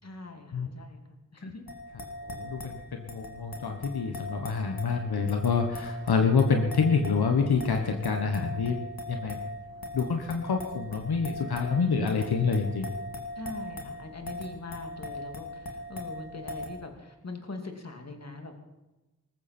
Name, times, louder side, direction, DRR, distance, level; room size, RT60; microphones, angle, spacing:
voice 1, 0.0-1.6 13.4-18.6, left 3 dB, 45° left, 4 dB, 2.6 m, -42 dB
sound 1, 1.7-16.7, left 1 dB, 65° left, 2.7 m, -40 dB
voice 2, 2.2-8.8 9.1-9.4 9.9-12.9, left 5 dB, 85° left, 4 dB, 1.4 m, -27 dB
19.5 x 14.5 x 4.5 m, 1.1 s
wide cardioid pair, 65°, 37 cm